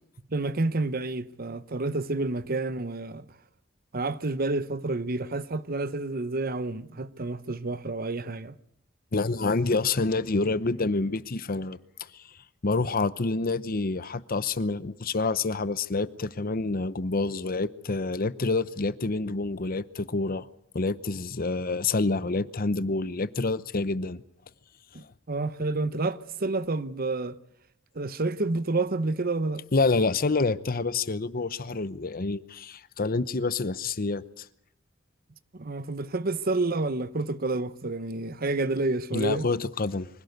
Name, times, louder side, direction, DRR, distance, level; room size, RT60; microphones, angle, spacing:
voice 1, 0.3-3.2 3.9-8.5 24.9-27.4 27.9-29.6 35.5-39.5, right 2 dB, 50° right, 0.9 m, -29 dB
voice 2, 9.1-11.8 12.6-20.5 20.7-24.2 29.7-34.5 39.1-40.1, left 3 dB, 50° left, 0.8 m, -27 dB
24.5 x 17.0 x 8.0 m
head